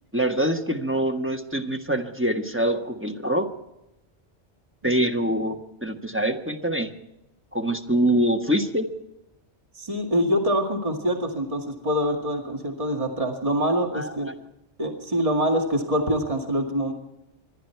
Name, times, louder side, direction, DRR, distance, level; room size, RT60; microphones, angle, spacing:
voice 1, 0.1-3.5 4.8-6.9 7.5-8.9 13.9-14.3, right 1 dB, 10° right, 4 dB, 1.2 m, -24 dB
voice 2, 9.8-14.3 14.8-16.9, equal, 30° right, 3 dB, 2.1 m, -25 dB
25.5 x 11.5 x 4.6 m, 0.90 s
omnidirectional pair, 1.2 m